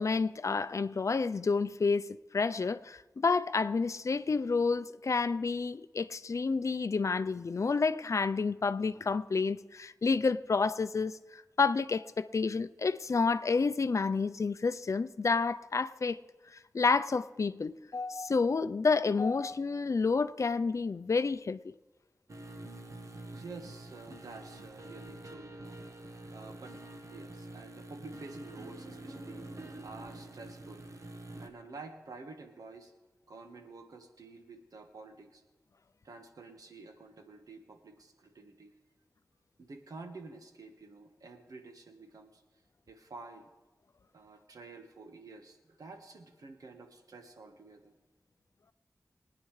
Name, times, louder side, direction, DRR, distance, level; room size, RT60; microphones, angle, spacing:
voice 1, 0.0-16.2 16.5-21.6, left 4 dB, 55° left, 0.5 m, -30 dB
sound 1, 22.3-31.5, right 2 dB, 60° right, 1.3 m, -47 dB
voice 2, 23.3-26.8 27.1-29.4 29.8-30.8 31.4-32.9 33.3-35.4 36.0-38.7 39.6-42.4 42.9-43.5 44.1-47.9, right 3 dB, 85° right, 1.4 m, -50 dB
23.5 x 9.7 x 3.3 m
cardioid pair, 50°, 6 cm